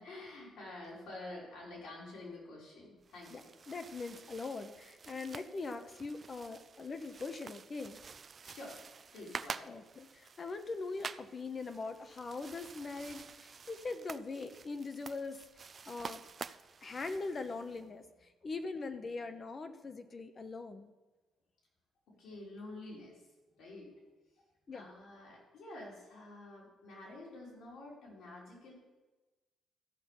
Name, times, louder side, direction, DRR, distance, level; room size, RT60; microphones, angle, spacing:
voice 1, 0.0-3.5 8.4-8.8 9.1-9.7 18.4-18.5 22.1-23.3 23.6-24.0 24.7-28.7, left 2 dB, 80° left, -4 dB, 4.0 m, -49 dB
sound 1, 3.0-17.8, right 5 dB, 40° right, 0.4 m, -49 dB
voice 2, 3.7-8.0 9.6-16.2 16.8-20.9 24.7-24.9, left 3 dB, 40° left, 9 dB, 0.9 m, -42 dB
14.0 x 5.8 x 5.5 m, 1.2 s
cardioid pair, 90°, 0 cm